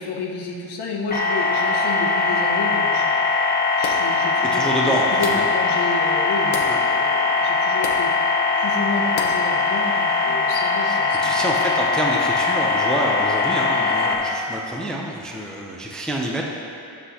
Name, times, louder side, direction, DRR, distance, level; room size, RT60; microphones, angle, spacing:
voice 1, 0.0-3.1 3.8-11.4, left 3 dB, 55° left, -2 dB, 1.3 m, -31 dB
sound 1, 1.1-14.1, left 4 dB, 20° left, 1.0 m, -21 dB
sound 2, 3.8-4.2 5.2-5.6 6.5-6.8 7.8-8.1 9.2-9.5, left 5 dB, 70° left, 0.9 m, -31 dB
voice 2, 4.4-5.5 6.7-7.0 10.8-16.4, right 1 dB, ahead, -1 dB, 0.4 m, -27 dB
12.5 x 7.7 x 2.8 m, 2.6 s
cardioid pair, 170°, 49 cm